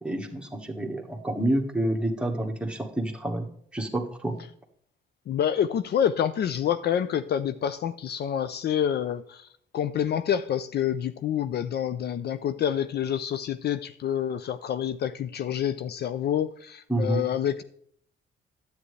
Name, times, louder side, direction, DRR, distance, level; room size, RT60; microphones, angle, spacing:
voice 1, 0.0-4.4 16.9-17.2, right 1 dB, 5° right, 2 dB, 1.4 m, -28 dB
voice 2, 5.3-9.5 9.7-17.6, left 9 dB, 55° left, 12 dB, 0.5 m, -27 dB
10.0 x 8.2 x 3.2 m, 0.65 s
cardioid pair, 90°, 20 cm